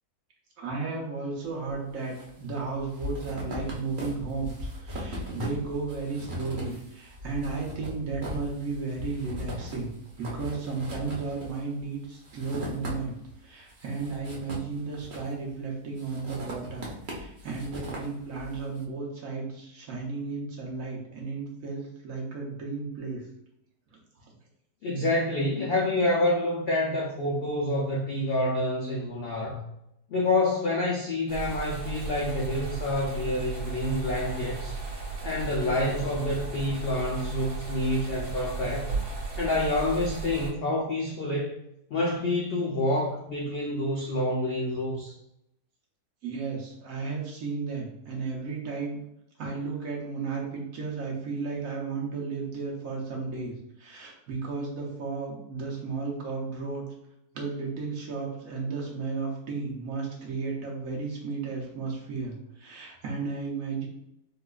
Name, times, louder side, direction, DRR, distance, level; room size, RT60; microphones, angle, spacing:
voice 1, 0.6-9.9 10.2-13.2 13.4-23.3 24.2-24.3 46.2-49.0 49.4-56.9 57.3-63.9, right 4 dB, 65° right, -2 dB, 1.1 m, -34 dB
sound 1, 1.7-2.3 2.6-13.3 13.7-15.5 16.0-18.6, equal, 50° right, 0.6 m, -39 dB
voice 2, 24.8-29.6 30.1-34.8 35.2-38.9 39.4-41.6 41.9-45.1, left 1 dB, 85° left, -3 dB, 0.5 m, -27 dB
sound 2, 31.3-40.5, right 4 dB, 80° right, 1.6 m, -35 dB
3.9 x 2.4 x 2.3 m, 0.81 s
omnidirectional pair, 1.6 m